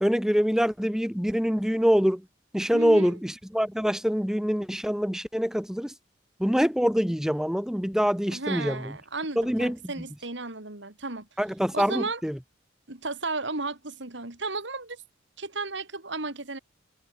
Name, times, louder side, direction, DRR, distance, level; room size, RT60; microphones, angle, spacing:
voice 1, 0.0-2.2 2.5-5.9 6.4-8.9 9.4-9.8 11.4-12.4, equal, 5° right, 1.0 m, -25 dB
voice 2, 2.7-3.2 8.3-11.3 11.7-12.2 12.9-15.0 15.4-16.6, right 3 dB, 75° right, 3.1 m, -34 dB
head